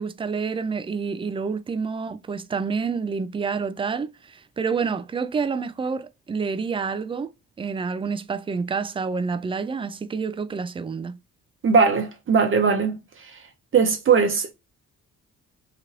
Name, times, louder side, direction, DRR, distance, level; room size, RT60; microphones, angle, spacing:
voice 1, 0.0-7.3 7.6-11.2, right 5 dB, 20° right, 0.3 m, -28 dB
voice 2, 11.6-13.0 13.7-14.5, right 5 dB, 45° right, 0.8 m, -19 dB
3.0 x 2.5 x 2.8 m
cardioid pair, 90°, 30 cm